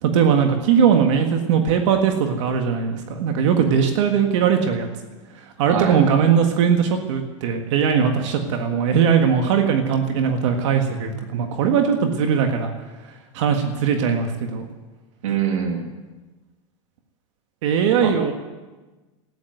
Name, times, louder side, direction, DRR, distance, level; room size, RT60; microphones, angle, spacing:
voice 1, 0.0-4.9 5.6-12.7 13.3-14.6 17.6-18.3, right 7 dB, 70° right, 5 dB, 1.7 m, -19 dB
voice 2, 5.7-6.0 15.2-15.9 18.0-18.3, right 7 dB, 85° right, 3 dB, 2.5 m, -24 dB
14.0 x 10.5 x 9.2 m, 1.2 s
supercardioid pair, 135°, 16 cm